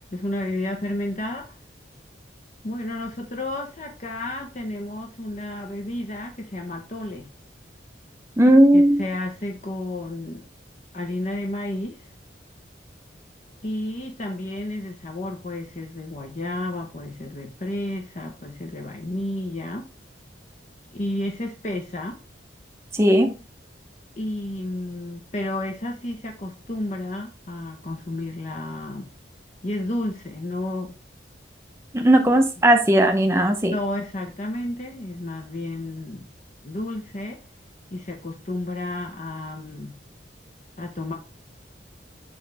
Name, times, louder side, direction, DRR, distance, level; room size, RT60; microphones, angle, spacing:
voice 1, 0.1-1.5 2.6-7.3 8.7-10.5 10.9-12.1 13.6-19.9 20.9-22.2 24.2-29.1 29.6-30.9 33.6-36.3 36.6-37.4 37.9-40.0 40.8-41.1, left 1 dB, 40° left, 0.8 m, -31 dB
voice 2, 8.4-9.0 22.9-23.4 31.9-33.7, right 1 dB, 15° right, 0.7 m, -17 dB
7.3 x 3.2 x 4.6 m
head